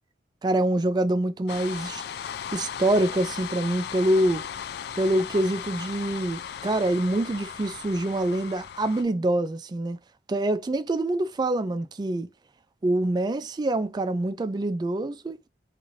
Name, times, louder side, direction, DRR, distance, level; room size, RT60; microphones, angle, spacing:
voice 1, 0.4-2.0 2.5-4.4 5.0-10.0 10.3-12.3 12.8-15.5, right 1 dB, 25° right, 0.3 m, -25 dB
sound 1, 1.5-9.0, left 8 dB, 65° left, 0.3 m, -37 dB
2.6 x 2.5 x 3.0 m
head